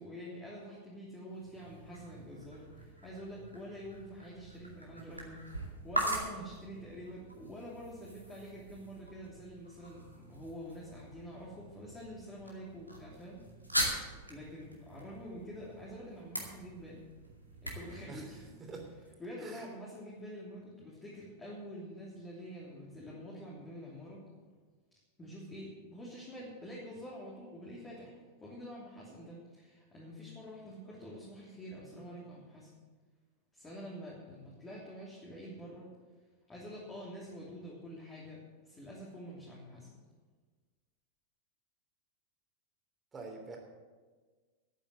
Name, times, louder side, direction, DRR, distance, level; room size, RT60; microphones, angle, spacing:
voice 1, 0.0-13.4 14.3-17.0 17.6-18.5 19.2-24.2 25.2-28.1 28.4-32.7 33.5-35.9 36.5-39.9, equal, 15° left, -5 dB, 3.1 m, -47 dB
sound 1, 1.3-19.1, right 1 dB, 90° right, 2.3 m, -42 dB
voice 2, 43.1-43.6, right 4 dB, 20° right, 1 dB, 3.1 m, -45 dB
12.0 x 9.1 x 7.6 m, 1.4 s
figure-of-eight pair, 90°, 0 cm